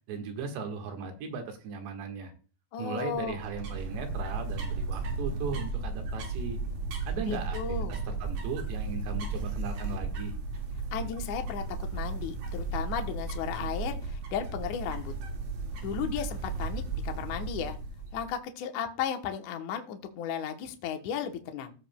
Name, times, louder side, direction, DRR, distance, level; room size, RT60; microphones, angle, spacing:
voice 1, 0.1-2.3 2.8-6.6 7.1-10.3, right 5 dB, 90° right, 4 dB, 3.8 m, -37 dB
voice 2, 2.7-3.4 7.3-8.0 10.9-15.1 15.8-17.8 18.1-21.7, left 8 dB, 75° left, 5 dB, 1.8 m, -35 dB
sound 1, 3.1-18.3, right 3 dB, 60° right, 3.7 m, -35 dB
16.0 x 7.3 x 2.2 m, 0.38 s
omnidirectional pair, 4.9 m